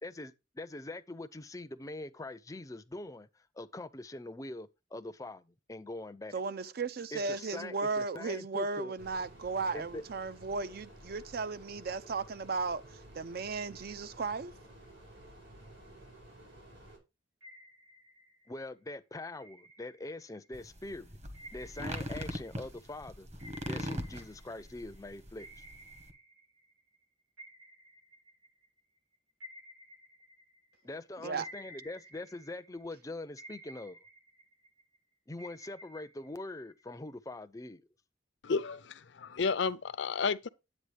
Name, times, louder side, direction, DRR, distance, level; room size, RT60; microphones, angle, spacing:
voice 1, 0.0-3.3 3.6-6.4 7.1-8.9 9.7-10.0 18.5-21.2 21.5-23.3 23.6-25.6 30.8-34.0 35.3-37.9, left 2 dB, 15° left, 0.5 m, -43 dB
voice 2, 6.3-14.5 31.2-31.5, right 4 dB, 50° right, 0.5 m, -35 dB
sound 1, 9.0-17.0, right 1 dB, 75° right, 5.4 m, -53 dB
sound 2, 17.4-18.7 19.4-20.6 21.3-25.0 25.4-27.0 27.4-30.9 31.4-33.0 33.4-35.0 35.4-37.1, equal, 90° right, 2.4 m, -54 dB
sound 3, 20.5-26.1, equal, 35° right, 1.2 m, -40 dB
voice 3, 38.4-40.5, left 5 dB, 70° left, 0.5 m, -32 dB
9.7 x 8.2 x 3.3 m
head